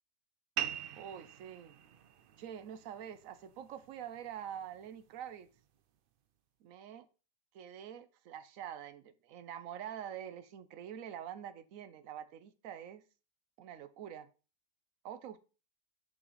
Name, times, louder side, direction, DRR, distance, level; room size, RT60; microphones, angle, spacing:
sound 1, 0.6-5.6, right 10 dB, 90° right, 0.4 m, -44 dB
voice 1, 1.0-1.8 2.4-5.5 6.6-7.1 7.5-13.0 13.6-14.3 15.0-15.4, right 9 dB, 70° right, 1.0 m, -46 dB
5.6 x 5.5 x 4.0 m
omnidirectional pair, 1.5 m